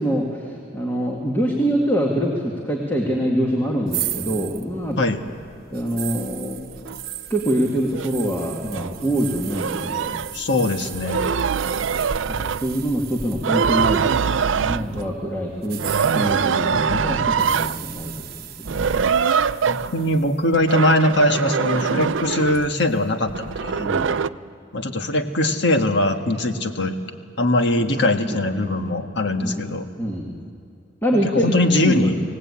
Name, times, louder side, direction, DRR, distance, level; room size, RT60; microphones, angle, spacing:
voice 1, 0.0-5.0 5.7-6.6 7.3-10.2 12.3-15.8 16.1-18.3 18.6-19.0 23.8-24.1 28.2-28.4 29.4-29.6 30.0-30.4 31.0-31.5 31.8-32.1, equal, 10° left, -1 dB, 2.1 m, -24 dB
sound 1, 3.9-14.8 15.6-20.4, right 11 dB, 55° right, 1.0 m, -36 dB
sound 2, 6.9-7.0 7.9-8.1 8.7-8.9 9.3-10.3 10.9-12.9 13.3-15.2 15.8-17.8 18.7-20.2 20.5-22.8 23.3-24.3, right 6 dB, 90° right, 0.5 m, -23 dB
voice 2, 10.3-11.3 16.7-17.0 19.7-23.9 24.7-27.0 27.4-29.9 31.1-32.2, left 1 dB, 65° left, 6 dB, 1.6 m, -21 dB
25.5 x 18.0 x 8.6 m, 2.3 s
head